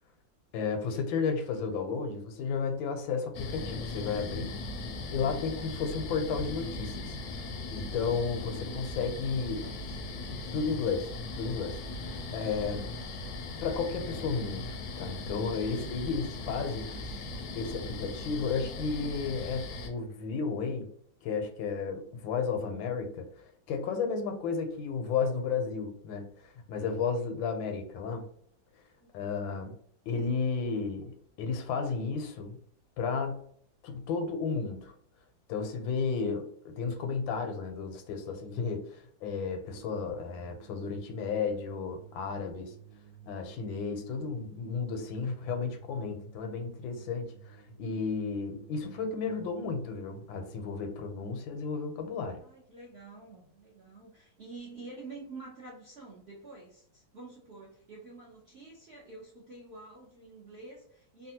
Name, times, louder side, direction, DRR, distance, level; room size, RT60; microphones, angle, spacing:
voice 1, 0.5-4.5 5.1-7.2 7.7-9.6 10.5-11.1 11.3-11.8 12.3-12.9 13.6-16.9 17.5-20.9 21.2-28.3 29.1-29.8 30.1-32.6 33.0-33.4 33.8-34.9 35.5-42.7 43.3-52.4, left 5 dB, 85° left, 6 dB, 1.4 m, -33 dB
sound 1, 3.3-19.9, left 2 dB, 70° left, 0.9 m, -39 dB
voice 2, 9.3-10.0 12.1-12.2 12.7-13.0 16.4-17.1 29.0-29.5 52.3-61.3, right 3 dB, 60° right, -5 dB, 0.6 m, -49 dB
sound 2, 39.8-52.9, right 9 dB, 85° right, 1.3 m, -54 dB
3.3 x 2.3 x 2.8 m, 0.65 s
omnidirectional pair, 2.0 m